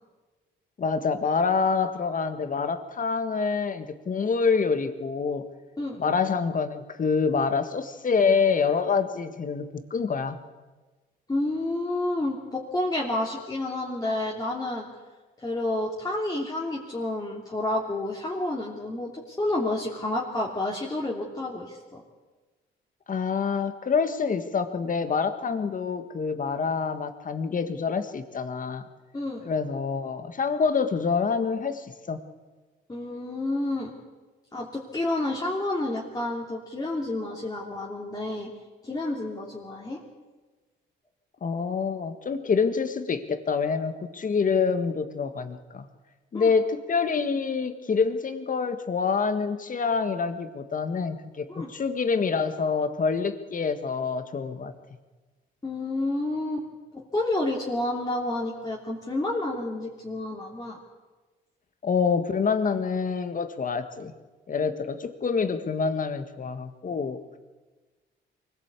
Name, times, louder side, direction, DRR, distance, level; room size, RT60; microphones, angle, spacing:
voice 1, 0.8-5.5 6.0-10.4 23.1-28.8 29.5-32.2 41.4-45.9 46.3-54.7 61.8-64.1 64.5-67.4, left 5 dB, 40° left, 9 dB, 1.8 m, -26 dB
voice 2, 11.3-14.9 15.4-22.0 29.1-29.5 32.9-33.9 34.5-38.5 38.8-40.0 46.3-46.5 51.5-51.7 55.6-56.7 56.9-60.8, left 2 dB, 20° left, -3 dB, 3.0 m, -30 dB
23.5 x 17.0 x 8.3 m, 1.3 s
cardioid pair, 90°, 20 cm